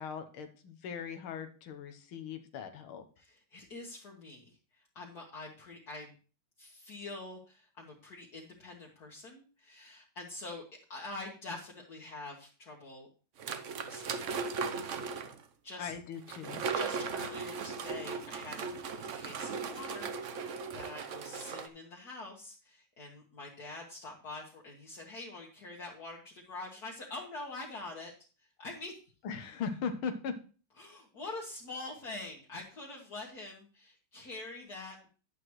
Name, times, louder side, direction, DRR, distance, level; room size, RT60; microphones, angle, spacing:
voice 1, 0.0-3.0 15.8-16.6 29.2-30.4, left 6 dB, 90° left, 7 dB, 1.9 m, -39 dB
voice 2, 3.2-4.6 5.0-6.1 6.6-10.6 10.9-13.1 13.5-14.5 15.6-15.9 16.7-18.7 19.1-20.1 20.7-28.1 28.6-29.0 30.8-35.1, left 2 dB, 50° left, -2 dB, 1.9 m, -45 dB
sound 1, 13.4-15.4 16.3-21.7, right 5 dB, 55° right, 0.8 m, -37 dB
11.0 x 9.5 x 3.1 m, 0.36 s
omnidirectional pair, 2.2 m